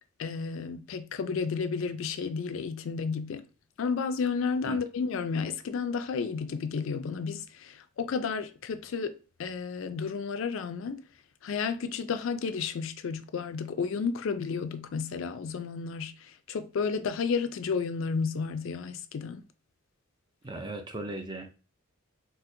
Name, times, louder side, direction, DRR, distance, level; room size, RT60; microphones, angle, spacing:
voice 1, 0.2-3.4 3.8-11.0 11.4-19.4, left 5 dB, 65° left, 0.4 m, -32 dB
voice 2, 20.4-21.6, right 2 dB, 20° right, 0.4 m, -37 dB
4.2 x 2.0 x 2.6 m
head